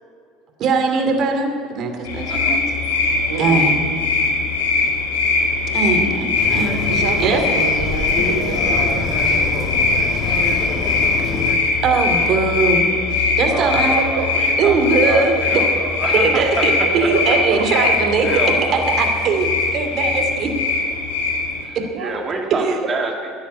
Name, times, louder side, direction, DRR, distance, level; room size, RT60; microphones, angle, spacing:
voice 1, 0.6-2.6 3.4-3.8 5.7-7.4 11.8-12.8 13.1-14.0 14.6-15.6 16.1-18.3 18.7-20.5 21.7-21.8 22.5-22.8, right 4 dB, 50° right, 5 dB, 2.5 m, -20 dB
sound 1, 2.0-21.7, left 3 dB, 85° left, 2.6 m, -20 dB
voice 2, 2.3-2.6 3.5-3.6 13.5-17.1 18.2-19.0 21.6-23.3, right 3 dB, 35° right, 2 dB, 2.3 m, -27 dB
voice 3, 3.3-3.7 6.9-11.0 14.0-14.3 16.8-18.7 19.9-20.4 21.9-22.2, right 6 dB, 85° right, 4 dB, 1.6 m, -29 dB
sound 2, 6.4-11.6, left 4 dB, 50° left, 2.3 m, -26 dB
13.5 x 10.5 x 9.5 m, 2.4 s
hypercardioid pair, 85°, 0 cm